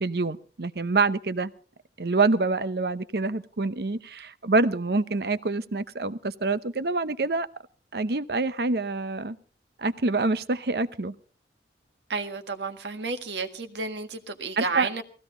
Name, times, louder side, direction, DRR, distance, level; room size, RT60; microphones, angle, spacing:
voice 1, 0.0-1.5 2.0-7.5 7.9-9.4 9.8-11.1 14.6-14.9, right 3 dB, 65° right, 0.8 m, -26 dB
voice 2, 12.1-15.0, right 4 dB, 80° right, 1.7 m, -31 dB
19.0 x 16.0 x 4.0 m
head